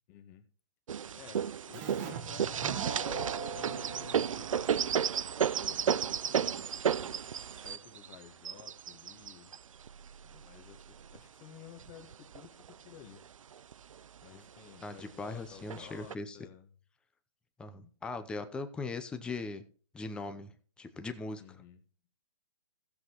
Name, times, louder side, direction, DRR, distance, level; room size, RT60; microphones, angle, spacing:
voice 1, 0.1-0.5 1.1-5.0 5.5-7.3 7.6-9.6 10.2-12.6 12.8-13.2 14.2-16.7 17.7-17.9 21.4-21.8, left 9 dB, 30° left, 7 dB, 1.5 m, -53 dB
sound 1, 0.9-11.2 11.8-12.7 13.2-13.3 13.5-14.2 15.0-15.1 15.7-16.1, right 8 dB, 80° right, 0.4 m, -33 dB
Keyboard (musical), 1.7-5.1, right 6 dB, 25° right, 1.3 m, -41 dB
voice 2, 14.8-16.4 17.6-19.6 19.9-21.4, left 3 dB, 5° left, 8 dB, 0.7 m, -40 dB
16.0 x 7.8 x 3.0 m, 0.42 s
hypercardioid pair, 145°, 17 cm